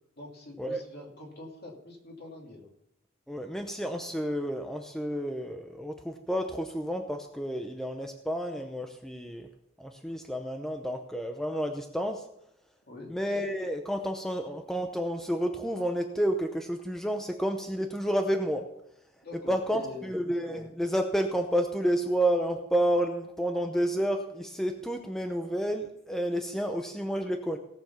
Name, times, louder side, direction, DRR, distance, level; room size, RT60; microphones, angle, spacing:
voice 1, 0.2-2.7 12.9-13.1 19.2-20.1, left 2 dB, 50° left, -1 dB, 2.9 m, -45 dB
voice 2, 3.3-9.5 9.8-12.2 13.1-18.6 19.5-27.6, equal, ahead, 4 dB, 0.7 m, -30 dB
18.0 x 7.0 x 5.7 m, 0.84 s
head